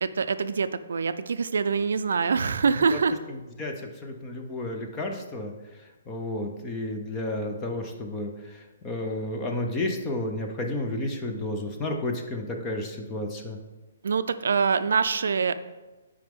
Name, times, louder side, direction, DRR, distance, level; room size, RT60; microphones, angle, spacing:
voice 1, 0.0-3.2 14.0-15.5, right 5 dB, 65° right, 12 dB, 0.4 m, -25 dB
voice 2, 3.3-5.5 5.8-13.6, left 1 dB, 10° left, 3 dB, 0.5 m, -32 dB
9.1 x 4.9 x 3.6 m, 1.2 s
hypercardioid pair, 180°, 0 cm